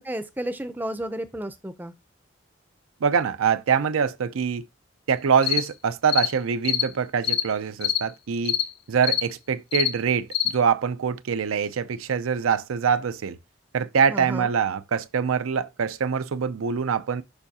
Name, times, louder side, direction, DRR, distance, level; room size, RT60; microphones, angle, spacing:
voice 1, 0.0-1.9 14.1-14.5, right 1 dB, 10° right, 0.5 m, -32 dB
voice 2, 3.0-4.6 5.1-8.6 8.9-13.4 13.7-17.2, right 6 dB, 90° right, 0.5 m, -24 dB
sound 1, 5.4-5.6 6.1-6.3 6.6-6.9 7.2-7.4 7.8-8.0 8.5-8.7 9.0-9.3 9.7-9.9 10.3-10.5, left 11 dB, 50° left, 0.7 m, -24 dB
6.8 x 5.5 x 2.8 m
head